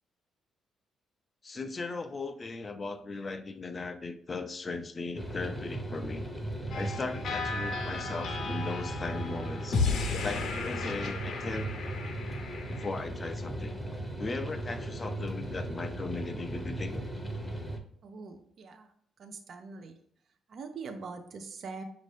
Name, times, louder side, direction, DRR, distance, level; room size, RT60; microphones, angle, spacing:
voice 1, 1.4-6.2 6.7-9.8 10.2-11.7 12.7-13.8 14.2-17.0, left 3 dB, 30° left, 8 dB, 0.3 m, -38 dB
sound 1, 5.2-17.8, right 1 dB, 5° left, 0.7 m, -37 dB
sound 2, 6.7-12.9, left 4 dB, 65° left, 0.7 m, -34 dB
voice 2, 18.0-18.9 19.2-19.9 20.5-21.8, right 4 dB, 55° right, 6 dB, 0.5 m, -43 dB
5.3 x 2.6 x 3.2 m, 0.65 s
cardioid pair, 90°, 0 cm